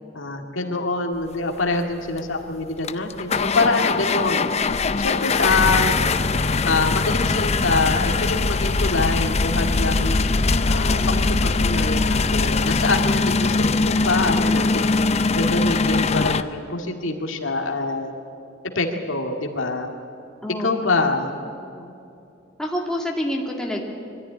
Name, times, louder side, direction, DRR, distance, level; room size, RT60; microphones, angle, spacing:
voice 1, 0.1-4.5 5.0-6.0 6.6-10.2 10.7-14.9 15.3-18.1 18.8-19.9 20.6-21.4, left 3 dB, 85° left, 2 dB, 2.1 m, -25 dB
sound 1, 2.2-2.3 2.8-16.4, left 3 dB, 35° left, 0.6 m, -21 dB
voice 2, 10.4-11.3 20.4-21.1 21.6-21.9 22.6-23.8, left 1 dB, 5° left, -1 dB, 2.3 m, -29 dB
23.0 x 14.0 x 10.0 m, 2.6 s
head